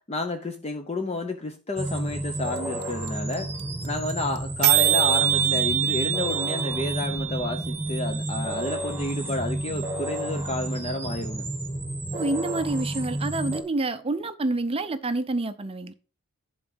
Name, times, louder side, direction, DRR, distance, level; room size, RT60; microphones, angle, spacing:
voice 1, 0.1-3.5 3.8-11.5, left 2 dB, 30° left, 0.7 m, -31 dB
sound 1, 1.8-13.6, right 1 dB, 10° right, 1.8 m, -31 dB
sound 2, 2.6-2.7 2.8-2.9 3.1-3.3 3.6-3.7 3.8-4.1 4.4-4.5 4.6-8.6, right 12 dB, 70° right, 0.7 m, -25 dB
voice 2, 12.1-15.9, right 2 dB, 25° right, 0.5 m, -28 dB
11.0 x 3.9 x 6.1 m
head